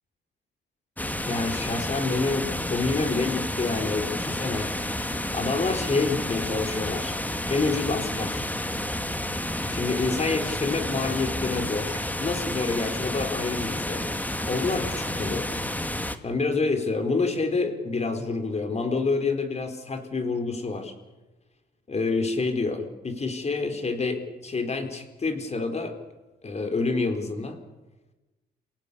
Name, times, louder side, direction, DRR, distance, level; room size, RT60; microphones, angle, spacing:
sound 1, 1.0-16.2, left 1 dB, 10° left, 1.8 m, -30 dB
voice 1, 1.2-4.7 5.3-7.2 7.5-8.5 9.7-14.1 14.5-15.5 16.2-20.9 21.9-25.9 26.4-27.6, left 3 dB, 35° left, 6 dB, 4.2 m, -28 dB
28.0 x 18.0 x 8.5 m, 1.1 s
cardioid pair, 90°, 20 cm